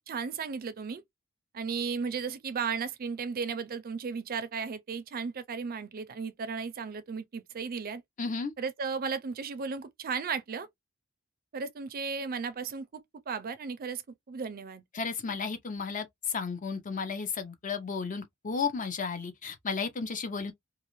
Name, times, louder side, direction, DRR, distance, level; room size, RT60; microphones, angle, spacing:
voice 1, 0.1-1.0 1.5-8.0 8.6-10.7 11.5-13.0 13.3-14.0 14.3-14.8, right 5 dB, 45° right, 0.4 m, -35 dB
voice 2, 8.2-8.5 14.9-20.5, left 5 dB, 40° left, 0.6 m, -33 dB
2.4 x 2.3 x 3.0 m
head